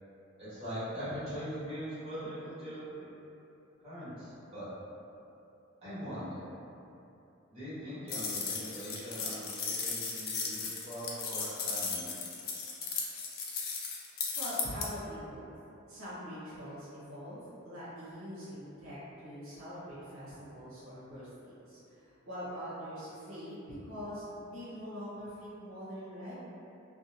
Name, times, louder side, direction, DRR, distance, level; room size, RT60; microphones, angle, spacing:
voice 1, 0.4-3.1 3.8-4.7 5.8-6.5 7.5-12.3, equal, 30° right, -15 dB, 1.2 m, -41 dB
sound 1, 8.1-14.9, left 5 dB, 45° left, 0.3 m, -36 dB
voice 2, 14.3-15.5 15.9-26.4, equal, 75° right, -11 dB, 0.8 m, -43 dB
2.6 x 2.1 x 2.7 m, 2.8 s
head